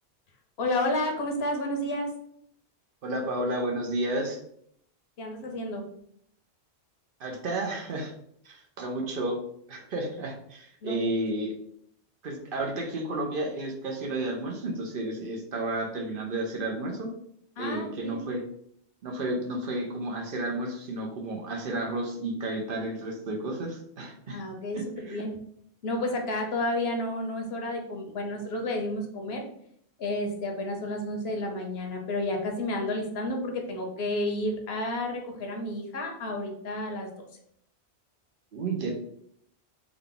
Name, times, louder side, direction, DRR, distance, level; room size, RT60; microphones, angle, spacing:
voice 1, 0.6-2.1 5.2-5.8 10.8-11.1 17.6-18.2 24.3-25.3 25.8-29.4 30.0-37.1, left 1 dB, 70° left, 2 dB, 0.9 m, -31 dB
voice 2, 3.0-4.4 7.2-8.1 8.4-9.4 9.7-11.5 12.2-17.1 17.6-18.4 19.0-24.4 24.7-25.2 38.5-38.9, right 2 dB, 60° right, 1 dB, 0.8 m, -32 dB
3.5 x 2.2 x 3.7 m, 0.69 s
omnidirectional pair, 1.1 m